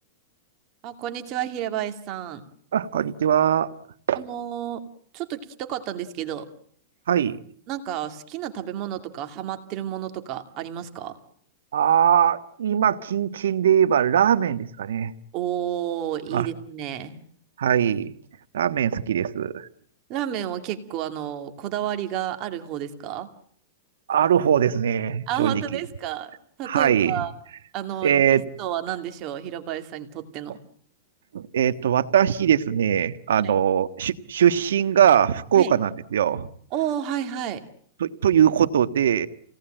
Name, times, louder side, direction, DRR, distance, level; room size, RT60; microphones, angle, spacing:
voice 1, 0.8-2.4 4.1-4.8 5.1-6.5 7.7-11.2 15.3-17.2 20.1-23.3 25.3-26.3 26.6-27.3 27.7-30.6 33.4-33.5 35.5-35.7 36.7-37.6, right 11 dB, 35° right, 7 dB, 2.5 m, -31 dB
voice 2, 2.7-3.7 4.1-4.2 7.1-7.4 11.7-15.1 16.3-16.5 17.6-18.1 18.5-19.7 24.1-25.8 26.6-27.1 28.0-28.4 31.3-36.5 38.0-39.3, right 9 dB, 90° right, 12 dB, 1.4 m, -21 dB
28.5 x 18.0 x 9.0 m, 0.62 s
supercardioid pair, 155°, 0 cm